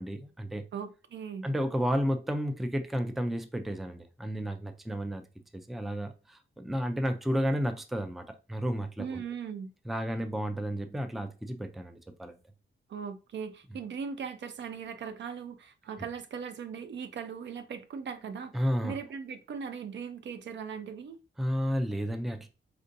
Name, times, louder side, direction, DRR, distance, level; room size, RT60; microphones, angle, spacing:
voice 1, 0.0-0.6 1.4-5.2 5.5-9.2 9.9-12.3 18.5-18.9 21.4-22.5, equal, ahead, 0.3 m, -32 dB
voice 2, 0.7-1.5 9.0-9.7 12.9-21.2, right 6 dB, 70° right, 0.5 m, -39 dB
4.3 x 2.6 x 2.6 m
wide cardioid pair, 135°, 19 cm